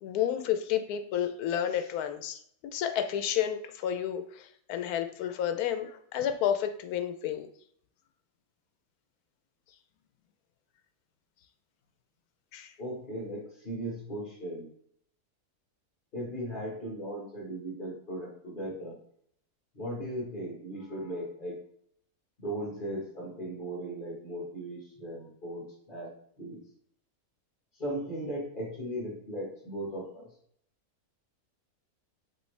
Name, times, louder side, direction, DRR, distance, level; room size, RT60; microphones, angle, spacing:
voice 1, 0.0-7.5 12.5-12.7, left 10 dB, 90° left, 8 dB, 1.1 m, -31 dB
voice 2, 12.8-14.7 16.1-19.0 19.7-21.6 22.4-26.6 27.8-30.3, right 1 dB, 35° left, -3 dB, 1.6 m, -37 dB
5.4 x 3.0 x 3.2 m, 0.65 s
omnidirectional pair, 1.6 m